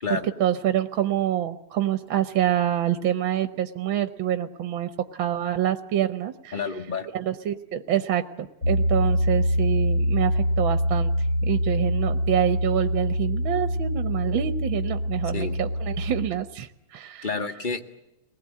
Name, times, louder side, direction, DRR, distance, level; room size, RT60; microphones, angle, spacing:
voice 1, 0.1-6.5 7.1-17.3, right 11 dB, 65° right, 10 dB, 1.7 m, -26 dB
voice 2, 6.5-7.1 15.3-15.6 17.2-17.8, left 4 dB, 25° left, 7 dB, 1.5 m, -29 dB
Piano, 8.6-16.3, equal, 45° left, 3.6 m, -25 dB
23.5 x 20.0 x 8.5 m, 0.89 s
omnidirectional pair, 2.4 m